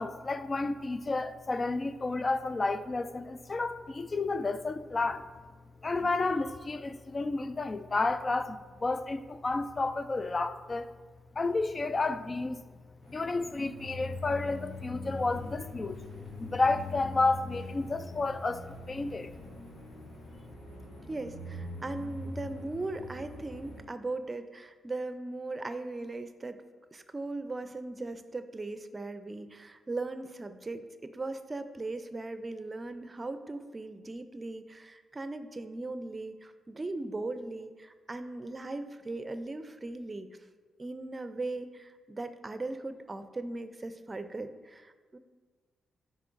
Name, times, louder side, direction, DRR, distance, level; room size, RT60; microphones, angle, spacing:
voice 1, 0.0-5.3 5.8-10.9 11.4-12.6 13.1-16.0 16.4-19.3, left 3 dB, 40° left, 0.3 m, -31 dB
sound 1, 13.0-23.8, left 2 dB, 75° left, 1.7 m, -43 dB
voice 2, 21.1-26.6 26.9-40.3 40.8-45.2, right 2 dB, 35° right, 0.5 m, -38 dB
10.0 x 4.1 x 2.5 m
hypercardioid pair, 40°, 0 cm